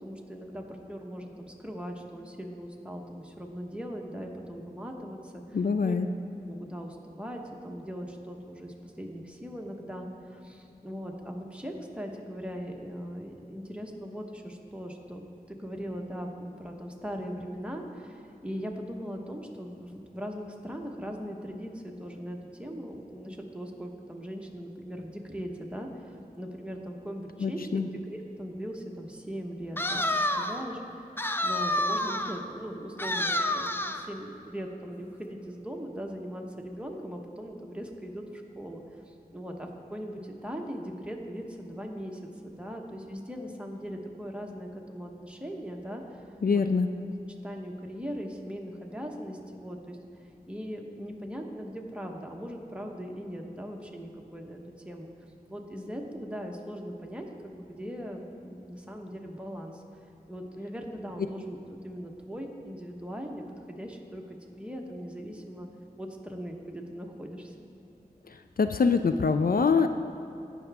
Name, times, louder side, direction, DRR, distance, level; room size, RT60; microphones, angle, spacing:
voice 1, 0.0-5.6 5.8-5.9 6.5-30.0 30.3-46.2 46.5-46.6 47.4-50.0 50.5-55.1 55.5-59.8 60.3-61.6 61.8-65.7 66.0-67.5, equal, 5° right, 1 dB, 1.2 m, -40 dB
voice 2, 5.5-6.1 27.4-27.9 46.4-46.9 68.3-69.9, left 5 dB, 65° left, 8 dB, 0.4 m, -24 dB
sound 1, 29.8-30.6 31.2-32.4 33.0-34.1, left 1 dB, 15° left, 0.5 m, -29 dB
17.5 x 6.0 x 3.5 m, 2.9 s
wide cardioid pair, 50°, 16 cm